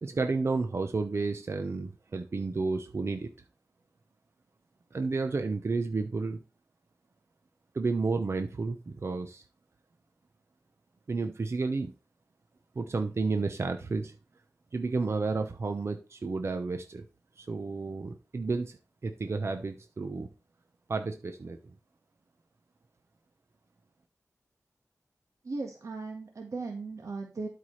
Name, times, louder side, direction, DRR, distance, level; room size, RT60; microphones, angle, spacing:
voice 1, 0.0-3.3 4.9-6.4 7.7-9.4 11.1-11.9 12.8-14.1 14.7-17.0 17.4-18.8 19.0-20.3 20.9-21.6, right 3 dB, 50° right, 7 dB, 0.8 m, -31 dB
voice 2, 25.4-27.5, right 3 dB, 70° right, 1 dB, 1.5 m, -37 dB
12.5 x 4.7 x 3.2 m, 0.31 s
wide cardioid pair, 95°, 6 cm